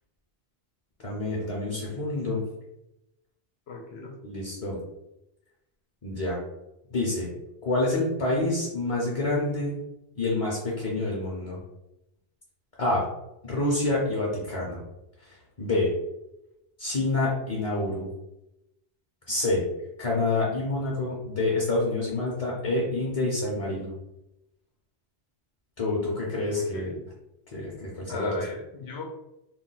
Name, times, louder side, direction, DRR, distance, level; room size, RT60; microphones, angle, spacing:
voice 1, 1.0-2.4 4.2-4.8 6.0-6.4 6.9-7.3 7.6-9.8 10.2-11.6 12.8-13.1 13.4-14.8 15.6-15.9 16.8-18.1 19.3-19.7 20.0-23.9 25.8-26.9 27.5-28.4, left 2 dB, 40° left, -4 dB, 0.7 m, -27 dB
voice 2, 3.7-4.2 26.5-27.0 28.1-29.0, left 3 dB, 85° left, 2 dB, 0.9 m, -38 dB
2.3 x 2.2 x 3.8 m, 0.89 s
omnidirectional pair, 1.1 m